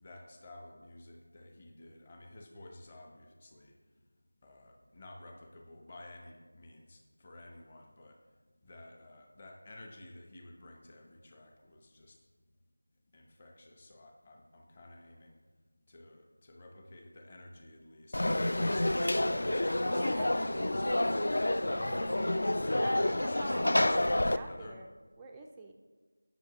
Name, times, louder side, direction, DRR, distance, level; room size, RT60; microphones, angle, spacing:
voice 1, 0.0-3.8 4.4-8.2 8.6-12.2 13.1-15.4 15.9-21.2 21.7-22.2 22.6-24.8, left 1 dB, 20° left, 2 dB, 0.9 m, -51 dB
Conversation / Crowd, 18.1-24.4, left 1 dB, 60° left, 0.5 m, -29 dB
voice 2, 19.9-20.9 21.6-22.4 22.7-25.7, right 3 dB, 5° right, 2 dB, 0.4 m, -48 dB
18.0 x 6.4 x 3.0 m, 1.4 s
figure-of-eight pair, 175°, 0 cm